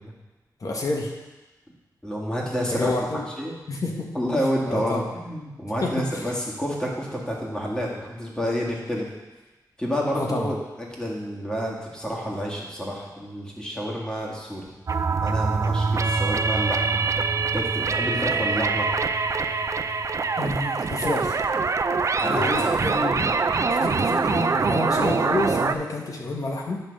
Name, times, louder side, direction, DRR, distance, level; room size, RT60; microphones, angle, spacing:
voice 1, 0.6-1.1 2.7-3.2 3.7-4.1 4.7-5.1 5.8-6.3 10.1-10.5 20.4-21.4 22.2-23.3 23.7-26.8, left 2 dB, 50° left, 0 dB, 1.2 m, -29 dB
voice 2, 2.0-3.5 4.1-9.1 9.8-14.7 15.2-17.0 17.5-18.9 22.2-22.7 23.9-24.1, equal, 10° left, -4 dB, 1.8 m, -29 dB
sound 1, 14.9-25.7, right 4 dB, 45° right, 0.4 m, -24 dB
9.2 x 3.4 x 6.4 m, 1.1 s
wide cardioid pair, 90°, 7 cm